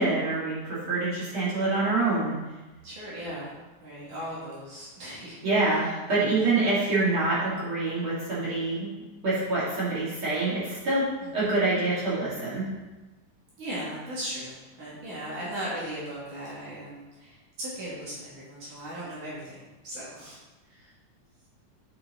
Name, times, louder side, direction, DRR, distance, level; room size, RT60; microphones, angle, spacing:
voice 1, 0.0-2.4 5.4-8.9 9.2-12.7, right 2 dB, 40° right, -9 dB, 4.0 m, -26 dB
voice 2, 2.8-3.6 3.8-5.9 11.2-11.5 13.6-20.4 20.7-20.9, right 1 dB, 70° right, -8 dB, 3.9 m, -38 dB
8.5 x 7.2 x 4.1 m, 1.1 s
omnidirectional pair, 3.7 m